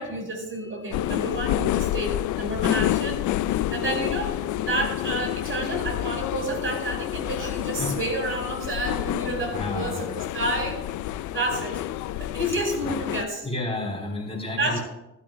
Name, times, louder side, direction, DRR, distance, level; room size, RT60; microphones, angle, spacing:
voice 1, 0.0-3.2 3.5-10.1 10.3-10.8 11.3-11.8 12.2-13.5 14.6-14.8, right 1 dB, 45° right, 1 dB, 4.6 m, -30 dB
sound 1, 0.9-13.3, left 13 dB, 80° left, 0.5 m, -28 dB
voice 2, 9.5-10.0 11.1-11.3 12.9-13.0 13.4-14.8, left 2 dB, 20° left, -2 dB, 3.5 m, -31 dB
20.0 x 12.5 x 2.2 m, 0.97 s
cardioid pair, 90°, 30 cm